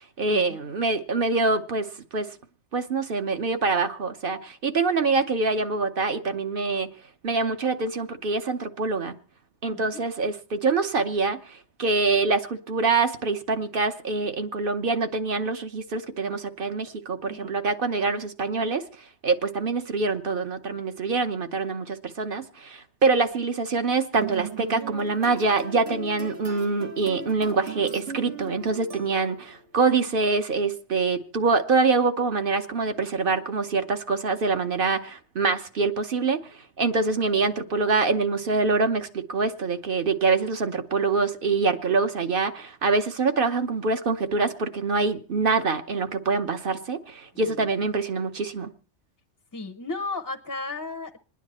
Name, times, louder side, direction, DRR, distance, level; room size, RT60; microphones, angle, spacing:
voice 1, 0.2-2.3 2.7-6.9 7.2-9.2 9.6-18.8 19.2-48.7, right 4 dB, 50° right, 1.1 m, -25 dB
voice 2, 9.6-10.0 17.2-17.5 47.4-47.7 49.5-51.2, left 3 dB, 20° left, 0.6 m, -34 dB
sound 1, 24.2-29.6, right 4 dB, 85° right, 2.2 m, -38 dB
27.0 x 10.0 x 4.2 m
omnidirectional pair, 1.2 m